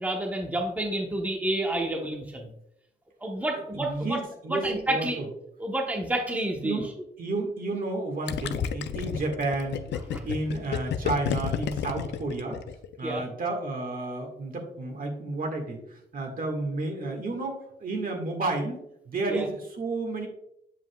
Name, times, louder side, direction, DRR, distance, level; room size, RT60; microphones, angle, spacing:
voice 1, 0.0-2.5 3.2-4.2 4.5-5.3 5.6-6.8 10.1-10.2 13.0-13.2 19.3-19.5, right 1 dB, 10° right, 0 dB, 1.0 m, -29 dB
voice 2, 3.5-5.3 6.6-6.9 7.2-9.8 10.2-12.6 13.0-20.3, right 2 dB, 55° right, 2 dB, 1.7 m, -31 dB
Gurgling, 8.3-13.0, left 8 dB, 90° left, 0.5 m, -31 dB
7.5 x 7.3 x 2.3 m, 0.77 s
cardioid pair, 105°, 18 cm